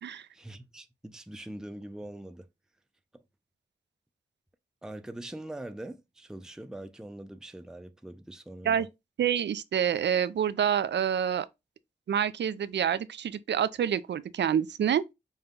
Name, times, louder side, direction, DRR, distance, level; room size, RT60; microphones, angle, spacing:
voice 1, 0.3-2.5 3.1-3.2 4.8-8.9, right 1 dB, 5° right, 0.5 m, -43 dB
voice 2, 9.2-11.5 12.1-15.0, right 8 dB, 80° right, 0.4 m, -27 dB
5.4 x 2.2 x 3.6 m
wide cardioid pair, 70°, 18 cm